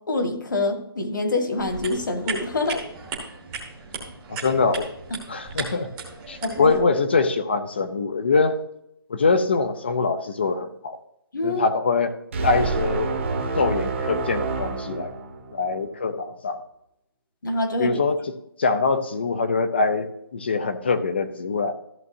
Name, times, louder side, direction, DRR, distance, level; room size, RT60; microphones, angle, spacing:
voice 1, 0.1-2.8 6.4-6.7 11.3-11.6 17.4-18.0, left 2 dB, 55° left, 5 dB, 1.8 m, -25 dB
sound 1, 1.6-6.8, right 4 dB, 10° right, 1.0 m, -36 dB
voice 2, 4.3-4.9 5.3-5.9 6.3-8.6 9.1-11.0 11.4-12.2 12.4-13.1 13.5-15.1 15.5-16.6 17.8-18.2 18.6-21.7, left 4 dB, 25° left, 10 dB, 0.6 m, -23 dB
sound 2, 12.3-15.8, right 4 dB, 30° right, 1.1 m, -28 dB
14.0 x 7.2 x 2.7 m, 0.79 s
hypercardioid pair, 170°, 13 cm